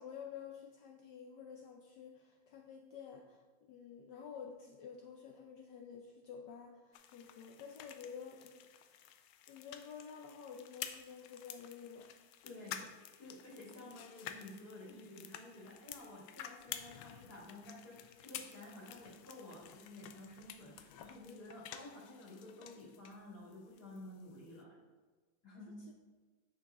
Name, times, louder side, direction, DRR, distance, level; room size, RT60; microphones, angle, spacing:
voice 1, 0.0-9.2 9.5-12.1 12.6-12.7, left 7 dB, 70° left, 3 dB, 1.1 m, -51 dB
sound 1, 6.9-23.2 23.5-24.6, left 10 dB, 85° left, 1.4 m, -51 dB
voice 2, 12.4-12.8 13.2-24.8 25.4-25.8, left 2 dB, 50° left, -8 dB, 2.9 m, -52 dB
8.7 x 6.5 x 3.6 m, 1.3 s
omnidirectional pair, 2.2 m